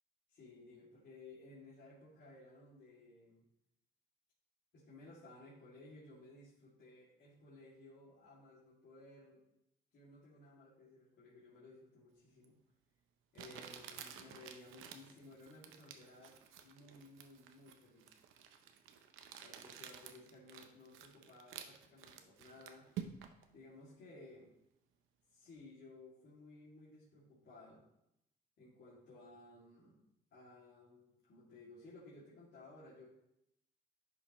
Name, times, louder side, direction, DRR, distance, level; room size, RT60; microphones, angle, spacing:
voice 1, 0.3-3.5 4.7-9.4 9.9-12.6 13.3-18.1 19.4-22.9 23.5-24.5 25.3-27.8 28.6-30.0 30.3-33.1, left 2 dB, 65° left, -9 dB, 2.6 m, -58 dB
Crumpling crinkling, 12.4-12.5 13.4-23.4, right 9 dB, 90° right, 0.7 m, -51 dB
10.5 x 5.7 x 3.1 m, 0.81 s
cardioid pair, 90°, 20 cm